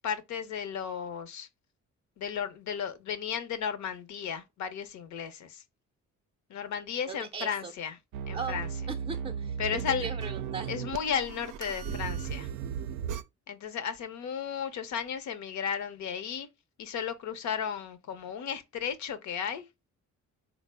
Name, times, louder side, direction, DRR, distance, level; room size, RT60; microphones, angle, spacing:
voice 1, 0.0-1.5 2.2-5.6 6.5-8.0 8.3-8.7 9.6-10.1 10.7-12.5 13.5-16.5 16.8-19.7, left 7 dB, 70° left, 0.7 m, -34 dB
voice 2, 7.1-7.7 8.3-8.6 8.9-10.7, right 5 dB, 20° right, 0.5 m, -38 dB
sound 1, 8.1-13.2, right 7 dB, 90° right, 0.5 m, -36 dB
3.9 x 2.0 x 3.2 m
cardioid pair, 90°, 30 cm